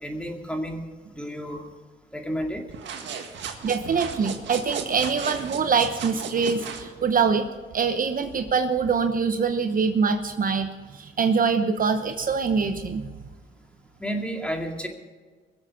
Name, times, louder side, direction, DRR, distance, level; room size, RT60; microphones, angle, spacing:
voice 1, 0.0-0.8 1.1-1.6 2.1-2.6 14.0-14.9, equal, 5° left, 2 dB, 2.3 m, -31 dB
sound 1, 2.7-6.9, right 6 dB, 65° right, 1.8 m, -35 dB
voice 2, 3.6-13.1, right 5 dB, 45° right, 7 dB, 0.9 m, -24 dB
22.0 x 7.7 x 5.7 m, 1.4 s
cardioid pair, 90°, 20 cm